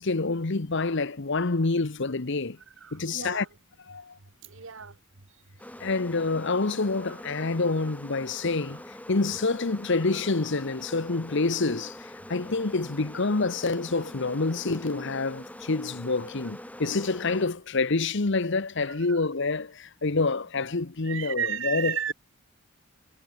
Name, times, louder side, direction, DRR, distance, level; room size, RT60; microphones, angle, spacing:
voice 1, 0.0-2.6 2.9-3.5 3.9-4.2 5.8-22.0, left 3 dB, 60° left, 1.0 m, -27 dB
voice 2, 2.8-3.5 4.4-4.9 10.1-10.2 18.9-19.2 21.0-22.1, right 8 dB, 65° right, 1.4 m, -33 dB
black-bees swarm, 5.6-17.4, left 1 dB, 5° left, 5.5 m, -44 dB
head